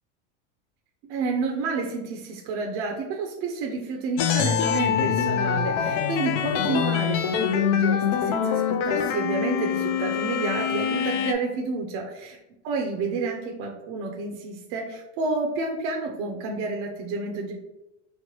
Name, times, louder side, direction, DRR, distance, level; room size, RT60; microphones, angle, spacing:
voice 1, 1.0-12.4 12.6-17.5, right 4 dB, 50° right, 1 dB, 0.5 m, -30 dB
sound 1, 4.2-11.3, left 8 dB, 75° left, 0.5 m, -24 dB
3.1 x 2.1 x 2.9 m, 0.94 s
supercardioid pair, 120°, 37 cm